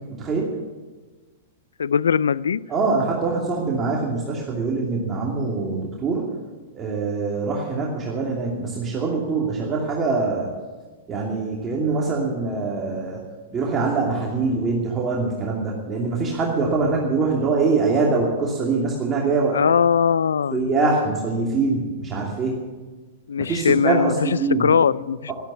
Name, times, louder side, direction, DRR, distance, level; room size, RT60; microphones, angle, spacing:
voice 1, 0.2-0.5 2.7-6.2 6.7-10.5 11.1-13.2 13.5-19.6 20.5-22.5 23.4-24.7, right 4 dB, 25° right, -3 dB, 2.7 m, -23 dB
voice 2, 1.8-2.6 19.5-20.7 23.3-24.1 24.6-25.3, left 7 dB, 85° left, 20 dB, 0.4 m, -20 dB
12.0 x 11.5 x 8.3 m, 1.3 s
hypercardioid pair, 115°, 0 cm